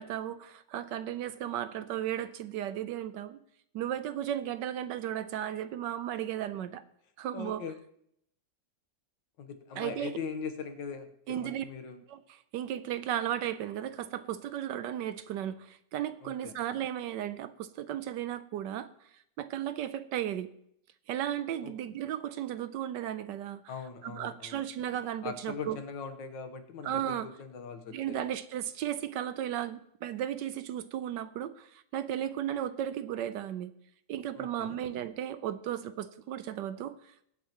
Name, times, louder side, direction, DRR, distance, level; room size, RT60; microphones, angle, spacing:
voice 1, 0.0-3.4 3.7-6.8 7.2-7.6 9.8-10.2 11.3-11.6 12.1-18.9 19.4-20.5 21.1-23.7 24.0-25.8 26.8-27.3 27.9-33.7 34.1-37.3, right 11 dB, 80° right, 12 dB, 1.2 m, -35 dB
voice 2, 7.3-7.8 9.4-12.0 16.2-16.5 21.6-21.7 23.7-24.6 25.2-28.3 34.4-34.8, left 5 dB, 80° left, 8 dB, 1.8 m, -41 dB
22.5 x 8.4 x 3.0 m, 0.72 s
omnidirectional pair, 2.0 m